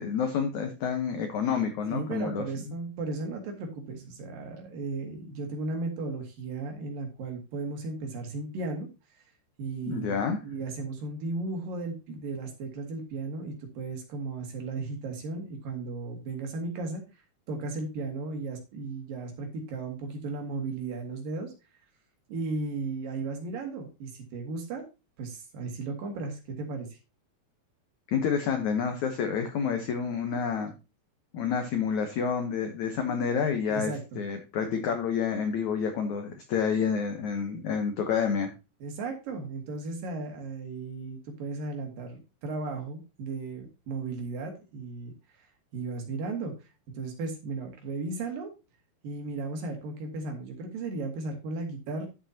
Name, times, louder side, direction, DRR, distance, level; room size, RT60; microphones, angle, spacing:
voice 1, 0.0-2.4 9.8-10.4 28.1-30.7 31.3-33.9 34.2-38.5, left 6 dB, 75° left, 6 dB, 1.7 m, -29 dB
voice 2, 1.9-8.9 9.6-17.0 17.5-21.5 22.3-24.9 25.2-27.0 33.7-34.2 38.8-45.5 45.7-46.7 46.9-48.5 49.0-52.1, right 3 dB, 60° right, 3 dB, 3.3 m, -35 dB
11.0 x 7.9 x 2.8 m, 0.28 s
omnidirectional pair, 4.9 m